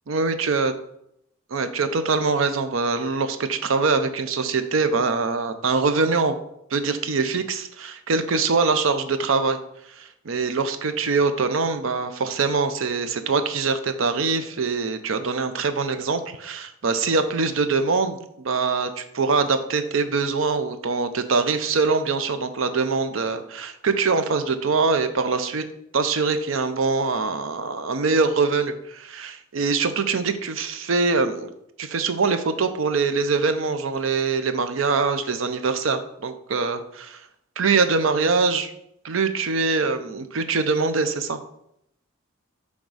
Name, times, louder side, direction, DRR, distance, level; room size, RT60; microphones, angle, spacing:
voice 1, 0.1-0.7 1.5-6.4 6.7-9.6 10.0-25.6 25.9-31.5 31.8-37.2 37.6-38.7 39.0-41.4, right 4 dB, 75° right, 10 dB, 0.6 m, -23 dB
6.4 x 3.6 x 4.9 m, 0.76 s
head